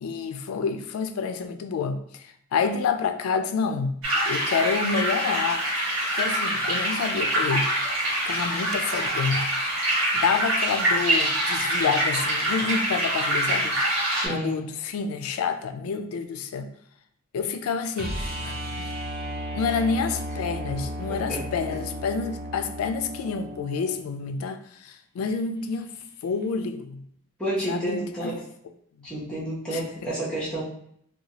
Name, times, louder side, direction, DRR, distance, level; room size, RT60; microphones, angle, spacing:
voice 1, 0.0-4.0 4.3-5.6 6.1-7.7 8.3-9.5 10.1-13.8 14.3-16.7 17.3-18.9 19.5-25.9 26.2-27.0 27.7-28.3 29.7-29.8, left 5 dB, 85° left, 8 dB, 0.3 m, -28 dB
sound 1, 4.0-14.3, right 1 dB, 65° right, 1.1 m, -25 dB
voice 2, 14.1-14.6 21.1-21.4 27.4-28.4 29.0-30.6, right 1 dB, 5° left, -7 dB, 0.8 m, -30 dB
sound 2, 18.0-23.9 26.4-26.5, equal, 45° right, 0.5 m, -34 dB
2.7 x 2.2 x 2.8 m, 0.68 s
head